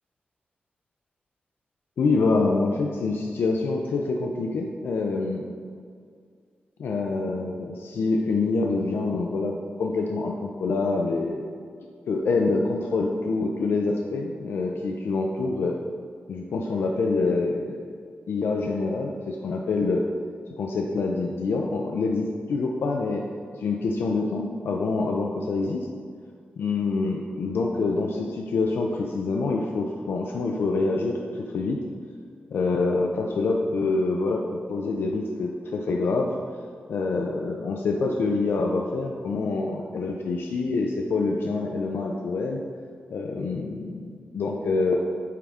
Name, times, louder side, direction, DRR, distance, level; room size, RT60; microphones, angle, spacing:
voice 1, 2.0-5.5 6.8-11.6 12.1-15.8 16.3-18.0 18.3-20.0 20.6-23.2 23.6-25.9 26.6-31.8 32.5-36.3 36.9-42.6 43.1-45.0, left 3 dB, 90° left, 1 dB, 0.4 m, -26 dB
9.0 x 3.6 x 3.5 m, 2.1 s
wide cardioid pair, 180°, 4 cm